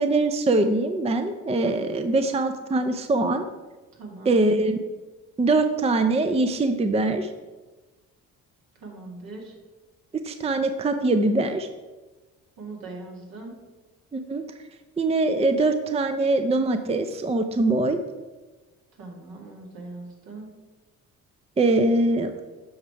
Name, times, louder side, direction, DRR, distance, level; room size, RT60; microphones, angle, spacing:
voice 1, 0.0-3.4 4.3-4.8 5.4-7.3 10.2-11.7 14.1-14.4 15.0-18.0 21.6-22.3, right 2 dB, 15° right, 8 dB, 0.6 m, -22 dB
voice 2, 3.9-4.4 8.8-9.5 12.6-13.5 19.0-20.5, right 3 dB, 65° right, 0 dB, 2.1 m, -40 dB
7.2 x 5.0 x 4.6 m, 1.2 s
supercardioid pair, 60°, 37 cm